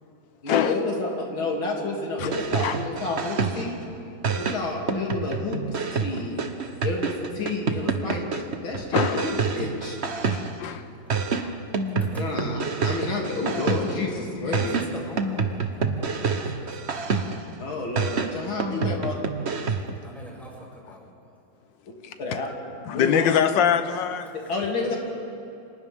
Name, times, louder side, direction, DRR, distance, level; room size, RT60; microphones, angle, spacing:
voice 1, 0.4-3.8 4.4-5.6 5.9-6.4 6.8-10.0 12.2-14.8 17.6-19.2 22.2-22.5 22.9-23.5 24.3-25.0, left 3 dB, 85° left, 3.8 m, -30 dB
sound 1, 2.2-3.8 4.2-10.7 11.1-14.1 14.5-17.5 18.0-20.0, right 4 dB, 40° right, 1.1 m, -28 dB
voice 2, 6.1-6.5 8.9-9.3 10.3-10.8 11.4-11.5 17.2-17.3 22.0-22.4 22.9-24.3, left 8 dB, 70° left, 1.6 m, -24 dB
voice 3, 14.4-16.9 20.0-21.1 24.2-24.4 24.9-25.0, equal, ahead, 6.6 m, -44 dB
29.5 x 26.0 x 3.7 m
omnidirectional pair, 2.2 m